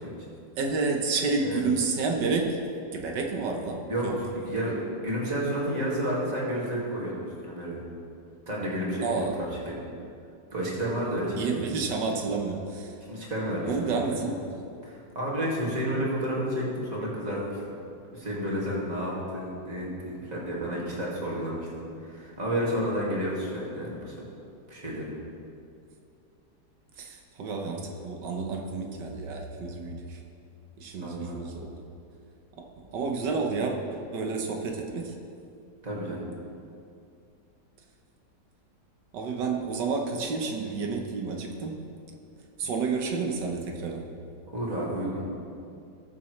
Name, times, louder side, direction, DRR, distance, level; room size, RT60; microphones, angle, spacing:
voice 1, 0.6-2.6 2.9-4.2 9.0-9.4 11.4-13.0 13.6-14.4 27.0-30.2 30.8-31.8 32.6-35.1 39.1-41.8 42.6-44.1, right 4 dB, 90° right, 2 dB, 1.6 m, -30 dB
voice 2, 4.4-4.7 5.0-7.8 8.5-9.8 10.5-11.7 13.1-13.7 14.8-17.8 18.1-21.7 22.0-24.1 24.7-25.1 31.0-31.4 35.8-36.2 44.5-45.3, equal, 25° right, -5 dB, 2.2 m, -31 dB
19.0 x 7.1 x 3.2 m, 2.5 s
omnidirectional pair, 1.8 m